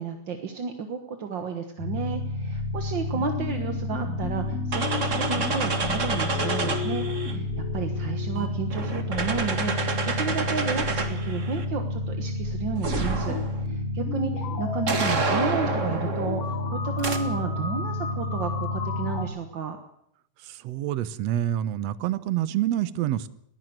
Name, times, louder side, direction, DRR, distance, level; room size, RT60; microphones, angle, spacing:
voice 1, 0.0-13.4 13.6-19.8, right 5 dB, 50° right, 6 dB, 1.6 m, -32 dB
sound 1, 1.8-19.2, left 2 dB, 85° left, 4.8 m, -30 dB
sound 2, 4.7-7.3 8.3-11.6 12.8-13.7 14.9-16.4 17.0-17.2, right 4 dB, 30° right, 1.6 m, -29 dB
voice 2, 20.4-23.3, right 12 dB, 65° right, 16 dB, 1.8 m, -27 dB
21.5 x 15.5 x 8.0 m, 0.76 s
omnidirectional pair, 3.7 m